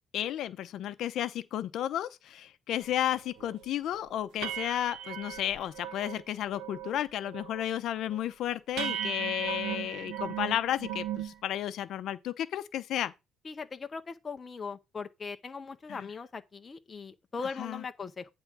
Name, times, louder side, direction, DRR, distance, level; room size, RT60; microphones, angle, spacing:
voice 1, 0.1-13.1 15.9-16.1 17.6-17.8, left 11 dB, 60° left, 0.6 m, -33 dB
sound 1, 2.9-3.0 3.4-3.6 3.9-4.0 4.4-6.2 6.5-7.0 7.2-7.7 8.1-8.2 8.8-11.3, right 10 dB, 80° right, 1.1 m, -37 dB
voice 2, 13.4-18.3, left 5 dB, 25° left, 0.6 m, -40 dB
9.5 x 3.5 x 6.0 m
cardioid pair, 155°, 0 cm